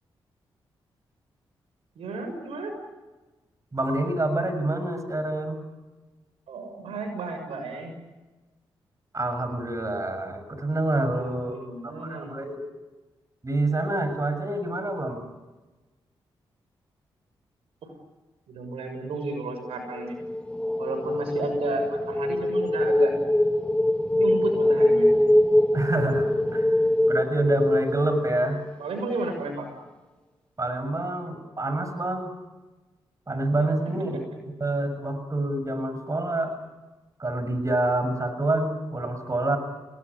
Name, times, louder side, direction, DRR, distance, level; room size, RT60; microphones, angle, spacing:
voice 1, 1.9-2.7 6.5-7.9 11.1-12.4 18.5-20.2 20.8-23.1 24.1-25.1 28.8-29.7, right 3 dB, 80° right, 6 dB, 6.8 m, -33 dB
voice 2, 3.7-5.6 9.1-11.5 11.8-12.6 13.4-15.2 21.4-21.5 25.7-28.6 30.6-32.3 33.3-36.5 37.2-39.6, right 2 dB, 35° right, 9 dB, 6.8 m, -27 dB
sound 1, 20.0-28.9, left 1 dB, 10° left, 1.5 m, -23 dB
30.0 x 19.5 x 9.8 m, 1.2 s
supercardioid pair, 50°, 10 cm